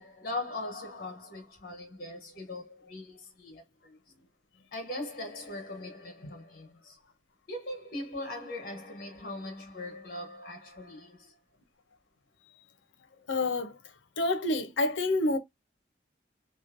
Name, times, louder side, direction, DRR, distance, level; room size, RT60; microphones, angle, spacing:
voice 1, 0.0-4.0 4.7-7.0 7.5-11.3, left 2 dB, 50° left, 1.3 m, -40 dB
voice 2, 13.3-13.7 14.2-15.4, left 2 dB, 85° left, 0.6 m, -27 dB
3.1 x 2.1 x 2.5 m
head